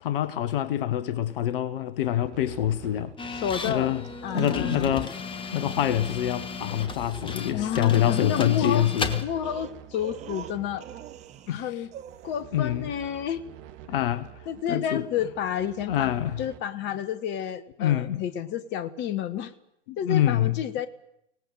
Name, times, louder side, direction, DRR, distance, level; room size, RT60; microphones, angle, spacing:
voice 1, 0.0-4.0 4.3-5.2 5.5-9.2 11.5-11.6 12.5-12.9 13.9-14.3 14.7-15.1 15.9-16.4 17.8-18.2 19.9-20.6, left 11 dB, 50° left, 1.2 m, -26 dB
sound 1, 2.1-16.6, right 11 dB, 40° right, 2.0 m, -47 dB
sound 2, 3.2-9.2, left 4 dB, 15° left, 1.6 m, -35 dB
voice 2, 3.3-3.9 4.2-4.9 7.5-8.9 9.2-10.9 11.5-11.9 12.2-13.4 14.5-16.1 16.4-19.5 20.0-20.9, left 9 dB, 30° left, 1.3 m, -30 dB
sound 3, 4.0-5.2 5.6-5.8 7.8-7.9 8.6-11.6 11.9-12.4, right 10 dB, 20° right, 0.8 m, -41 dB
24.0 x 18.5 x 7.5 m
figure-of-eight pair, 105°, 36 cm